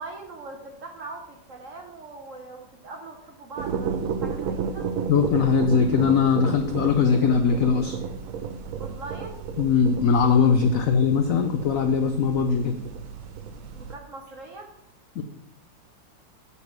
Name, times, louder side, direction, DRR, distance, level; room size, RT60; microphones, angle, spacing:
voice 1, 0.0-4.9 8.8-9.4 13.7-14.7, right 3 dB, 50° right, 3 dB, 1.1 m, -41 dB
sound 1, 3.6-14.0, right 6 dB, 85° right, 0.7 m, -32 dB
voice 2, 5.1-8.0 9.6-12.8 15.2-15.3, left 6 dB, 75° left, 6 dB, 0.7 m, -21 dB
8.4 x 4.1 x 5.9 m, 0.81 s
omnidirectional pair, 2.1 m